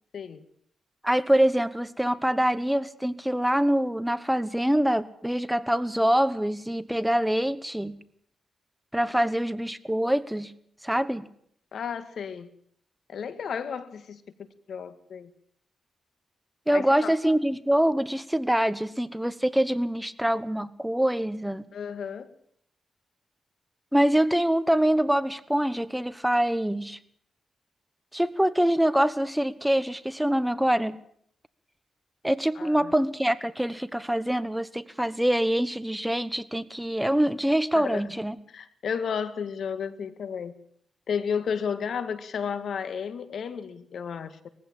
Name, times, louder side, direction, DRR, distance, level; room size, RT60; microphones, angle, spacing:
voice 1, 1.0-8.0 8.9-10.5 10.8-11.3 16.7-21.7 23.9-27.0 28.1-31.0 32.2-38.3, right 1 dB, 5° right, 15 dB, 1.1 m, -25 dB
voice 2, 11.7-12.5 13.1-14.2 14.7-15.3 16.7-17.3 21.7-22.3 32.6-32.9 37.8-38.1 38.5-40.5 41.1-44.5, left 7 dB, 70° left, 12 dB, 1.9 m, -33 dB
21.0 x 15.5 x 8.9 m, 0.66 s
cardioid pair, 85°, 0 cm